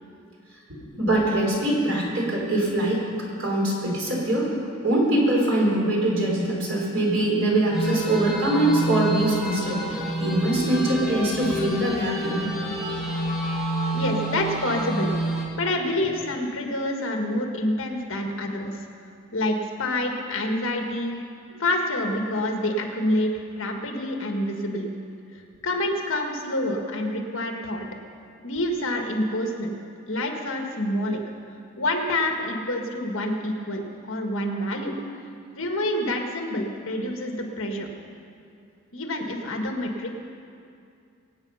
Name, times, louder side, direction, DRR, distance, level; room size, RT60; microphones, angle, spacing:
voice 1, 1.0-3.0 3.4-4.5 4.8-12.5, right 1 dB, 60° right, -3 dB, 4.3 m, -23 dB
sound 1, 7.7-15.5, right 1 dB, ahead, 2.8 m, -28 dB
voice 2, 13.9-15.1 15.5-18.7 19.3-21.2 21.6-24.9 25.3-27.9 28.4-29.8 30.1-31.2 31.8-34.9 35.5-37.9 38.9-40.1, left 1 dB, 60° left, 2 dB, 1.7 m, -27 dB
23.5 x 8.7 x 5.7 m, 2.4 s
head